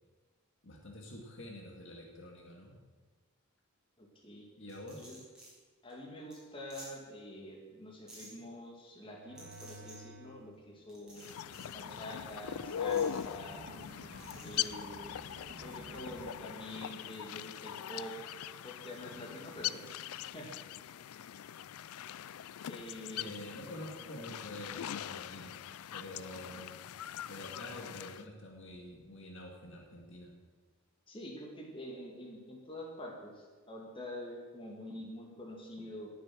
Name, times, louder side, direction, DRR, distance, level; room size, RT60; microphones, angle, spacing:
voice 1, 0.6-2.8 4.6-5.1 23.2-26.7 27.3-30.3, left 1 dB, 55° left, 0 dB, 2.0 m, -47 dB
voice 2, 4.0-4.5 5.0-5.2 5.8-11.2 11.7-13.6 14.4-15.1 15.6-18.2 18.6-20.5 22.7-23.4 31.1-36.1, left 1 dB, 25° left, -1 dB, 2.5 m, -46 dB
sound 1, 4.7-5.5 5.9-6.0 6.3-6.4 6.7-6.9 8.1-8.3 9.3-9.9 10.9-11.7 12.8-13.2 14.2-14.7, right 1 dB, 5° right, 4.9 m, -53 dB
sound 2, 9.0-10.4 10.8-16.3, right 2 dB, 40° right, 1.3 m, -52 dB
sound 3, 11.2-28.2, left 10 dB, 75° left, 0.4 m, -41 dB
18.5 x 7.5 x 6.2 m, 1.4 s
head